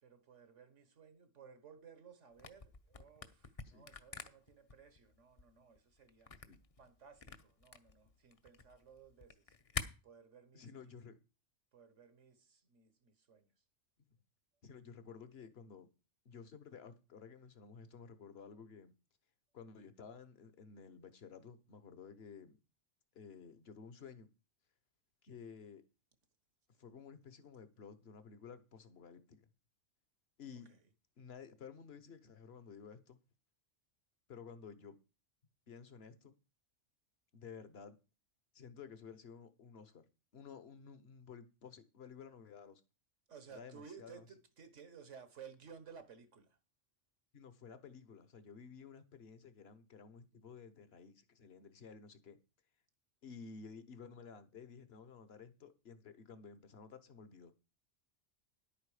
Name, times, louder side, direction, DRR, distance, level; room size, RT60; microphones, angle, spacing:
voice 1, 0.0-6.3 6.8-9.5 10.0-10.9 11.7-13.5 30.7-30.8 43.3-46.6, right 6 dB, 75° right, 1.7 m, -57 dB
Camera, 2.3-9.8, left 4 dB, 35° left, 0.7 m, -47 dB
voice 2, 10.5-11.1 14.6-15.9 16.2-18.9 19.5-22.6 23.1-24.3 25.2-25.8 26.8-29.4 30.4-30.7 31.2-33.2 34.3-35.0 35.7-36.3 37.3-38.0 38.5-40.0 40.3-42.8 43.5-44.2 47.3-52.4 53.2-57.5, left 6 dB, 55° left, 1.3 m, -53 dB
10.5 x 8.8 x 4.9 m
omnidirectional pair, 1.3 m